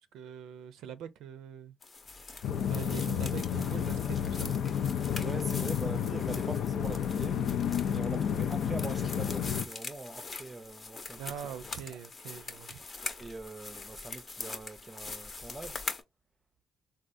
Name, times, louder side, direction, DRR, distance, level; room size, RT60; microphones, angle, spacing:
voice 1, 0.0-1.7 2.7-4.6 11.2-12.8, right 9 dB, 85° right, 0.4 m, -43 dB
sound 1, 1.8-16.0, left 3 dB, 35° left, 0.7 m, -43 dB
sound 2, 2.4-9.6, left 8 dB, 70° left, 0.3 m, -31 dB
voice 2, 5.1-7.4 7.8-11.2 11.9-12.0 13.2-15.8, right 3 dB, 25° right, 0.4 m, -43 dB
3.5 x 2.3 x 2.5 m
cardioid pair, 90°, 0 cm